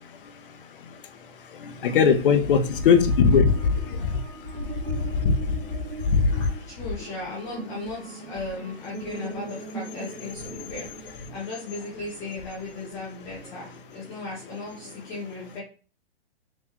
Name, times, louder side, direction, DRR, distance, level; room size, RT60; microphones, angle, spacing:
voice 1, 0.0-6.4, left 5 dB, 55° left, 7 dB, 0.7 m, -23 dB
sound 1, 2.5-11.8, right 5 dB, 85° right, 0.8 m, -41 dB
voice 2, 6.3-15.6, left 3 dB, 10° left, -6 dB, 0.4 m, -36 dB
3.6 x 3.0 x 2.8 m, 0.37 s
hypercardioid pair, 135°, 33 cm